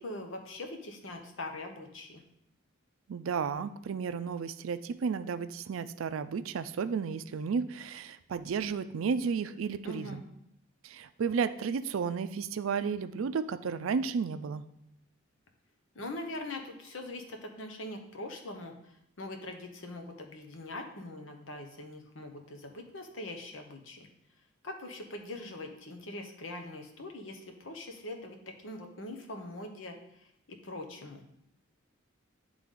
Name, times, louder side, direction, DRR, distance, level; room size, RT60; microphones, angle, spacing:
voice 1, 0.0-2.2 9.8-10.2 15.9-24.1 24.6-28.4 28.6-30.0 30.5-31.2, left 2 dB, 70° left, 4 dB, 0.9 m, -42 dB
voice 2, 3.1-10.2 10.8-14.6, right 6 dB, 90° right, 12 dB, 0.4 m, -33 dB
9.9 x 3.4 x 3.7 m, 0.77 s
head